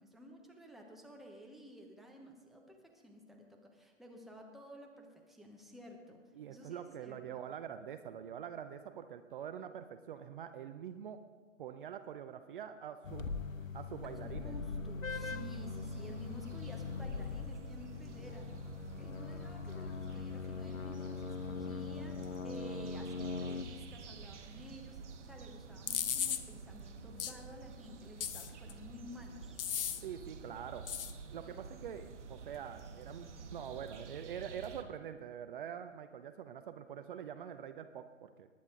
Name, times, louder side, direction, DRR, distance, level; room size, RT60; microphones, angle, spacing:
voice 1, 0.0-6.2 6.5-7.2 14.0-18.5 19.0-25.0 25.2-29.6, left 1 dB, ahead, 1 dB, 1.0 m, -52 dB
voice 2, 6.4-11.2 11.6-13.3 13.7-14.6 30.0-30.9 31.3-38.5, right 9 dB, 40° right, 9 dB, 0.7 m, -45 dB
sound 1, 13.0-23.6, left 5 dB, 85° left, 1.0 m, -41 dB
sound 2, 15.1-34.8, right 5 dB, 65° right, 1.4 m, -50 dB
sound 3, 25.9-26.4 27.2-27.3 28.2-28.7 29.6-30.0 30.9-31.1, left 9 dB, 45° left, 0.9 m, -35 dB
19.5 x 9.6 x 3.8 m, 1.4 s
figure-of-eight pair, 125°, 39 cm